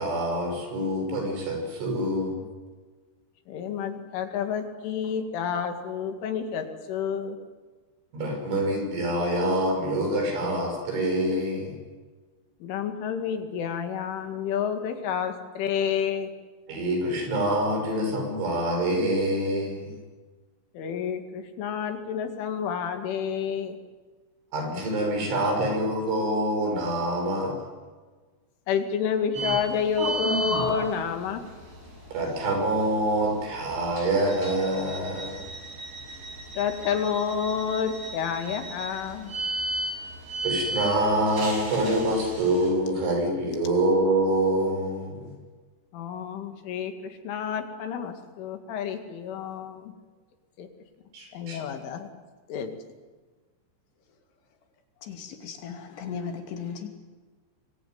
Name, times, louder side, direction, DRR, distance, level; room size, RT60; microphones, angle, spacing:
voice 1, 0.0-2.4 8.1-11.7 16.7-19.9 24.5-27.6 32.1-35.4 40.4-45.3 51.1-51.6, right 1 dB, 80° right, 3 dB, 8.5 m, -26 dB
voice 2, 3.5-7.4 12.6-16.3 20.7-23.7 28.7-31.4 36.6-39.3 45.9-49.9 50.6-50.7 51.3-52.1 52.5-52.8, left 7 dB, 90° left, 6 dB, 4.7 m, -29 dB
sound 1, 29.3-42.7, right 1 dB, 30° right, 7.9 m, -35 dB
voice 3, 55.0-56.9, left 6 dB, 65° left, 4 dB, 4.6 m, -36 dB
25.5 x 22.0 x 9.5 m, 1.4 s
omnidirectional pair, 5.4 m